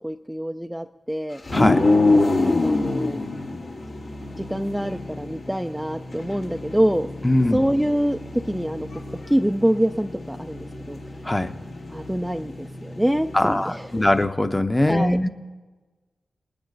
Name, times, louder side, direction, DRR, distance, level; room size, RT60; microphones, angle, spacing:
voice 1, 0.0-1.4 2.4-3.2 4.4-7.1 7.5-8.2 8.5-8.9 9.3-11.0 11.9-14.1 14.9-15.2, equal, 5° right, 7 dB, 0.4 m, -25 dB
sound 1, 1.4-14.2, left 2 dB, 70° left, 1.8 m, -27 dB
voice 2, 1.5-1.8 7.2-7.6 11.2-11.5 13.3-15.3, left 1 dB, 20° left, 8 dB, 0.8 m, -21 dB
19.0 x 9.6 x 4.0 m, 1.3 s
cardioid pair, 45°, 0 cm